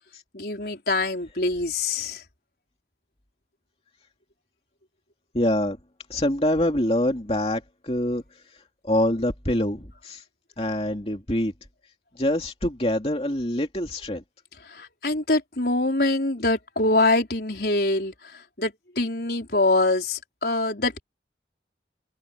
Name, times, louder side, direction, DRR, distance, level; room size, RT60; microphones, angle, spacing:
voice 1, 0.3-2.2 14.7-21.0, left 2 dB, 65° left, 4.4 m, -24 dB
voice 2, 5.3-5.8 6.1-10.2 10.6-11.5 12.1-14.2, left 1 dB, 35° left, 2.9 m, -25 dB
open air
head